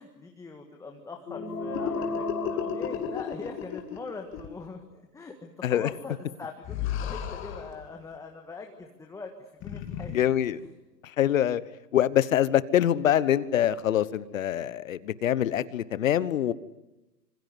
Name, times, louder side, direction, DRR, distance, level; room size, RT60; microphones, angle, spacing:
voice 1, 0.0-10.2 10.6-10.7, left 4 dB, 5° left, 3 dB, 1.7 m, -42 dB
sound 1, 1.2-3.9, left 3 dB, 70° left, 6.3 m, -34 dB
sound 2, 1.7-4.1 4.3-4.5 6.6-7.9 9.6-10.1, left 10 dB, 25° left, 2.8 m, -34 dB
voice 2, 10.1-10.6 11.2-11.6 11.9-16.5, left 11 dB, 55° left, 18 dB, 1.2 m, -24 dB
26.0 x 25.5 x 8.0 m, 0.99 s
figure-of-eight pair, 120°, 49 cm